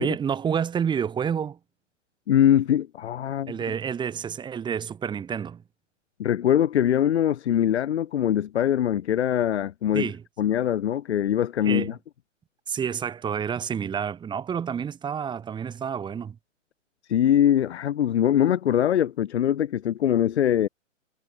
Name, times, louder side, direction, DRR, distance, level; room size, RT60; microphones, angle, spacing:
voice 1, 0.0-1.6 3.5-5.6 9.9-10.2 11.6-11.9 12.7-16.4, right 7 dB, 10° right, 2.9 m, -29 dB
voice 2, 2.3-3.5 6.2-10.1 10.4-12.0 17.1-20.7, left 10 dB, 60° left, 1.2 m, -22 dB
hypercardioid pair, 135°, 38 cm